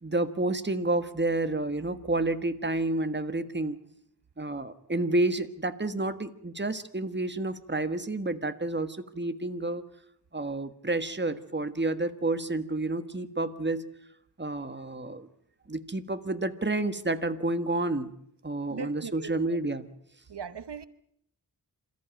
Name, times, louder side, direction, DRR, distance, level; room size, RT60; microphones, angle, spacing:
voice 1, 0.0-3.8 4.4-9.8 10.3-13.9 14.4-15.3 15.7-18.1 18.4-19.9, right 2 dB, 25° right, 10 dB, 1.5 m, -30 dB
voice 2, 18.7-19.6 20.3-20.9, right 6 dB, 85° right, 14 dB, 1.0 m, -39 dB
27.0 x 14.5 x 9.0 m, 0.72 s
wide cardioid pair, 65°, 40 cm